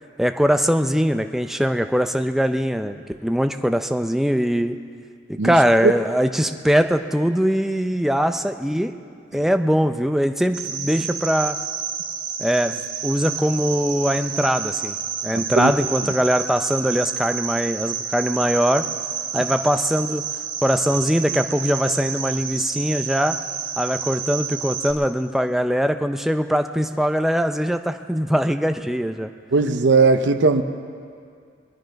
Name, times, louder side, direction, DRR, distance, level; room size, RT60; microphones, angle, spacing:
voice 1, 0.2-4.8 5.3-8.9 9.3-11.6 12.4-14.9 15.2-18.8 19.3-20.2 20.6-23.4 23.8-29.3, equal, ahead, 7 dB, 0.5 m, -21 dB
Cricket, 10.5-24.9, right 7 dB, 85° right, 1.5 m, -30 dB
voice 2, 15.3-15.7 29.5-30.6, right 3 dB, 70° right, 7 dB, 0.7 m, -18 dB
22.5 x 10.0 x 5.2 m, 2.3 s
head